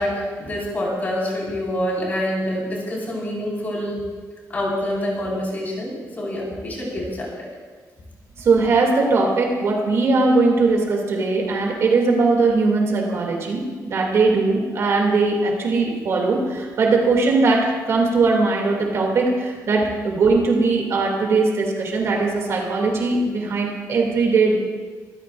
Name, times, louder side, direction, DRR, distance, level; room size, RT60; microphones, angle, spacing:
voice 1, 0.0-4.0 4.5-7.5, left 1 dB, 30° left, -4 dB, 5.0 m, -26 dB
voice 2, 8.4-24.5, right 3 dB, 50° right, 0 dB, 2.7 m, -20 dB
25.0 x 15.0 x 2.6 m, 1.5 s
cardioid pair, 175°, 6 cm